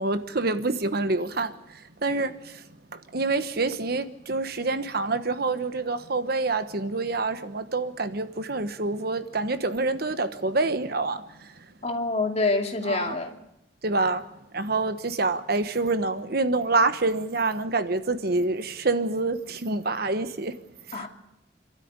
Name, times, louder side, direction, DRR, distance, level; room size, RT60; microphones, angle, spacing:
voice 1, 0.0-2.6 2.9-11.5 12.8-13.1 13.8-14.3 14.5-20.6 20.9-21.1, right 3 dB, 55° right, 1.2 m, -27 dB
voice 2, 11.8-13.4 20.9-21.1, left 3 dB, 35° left, 2.5 m, -26 dB
27.5 x 13.0 x 9.7 m
head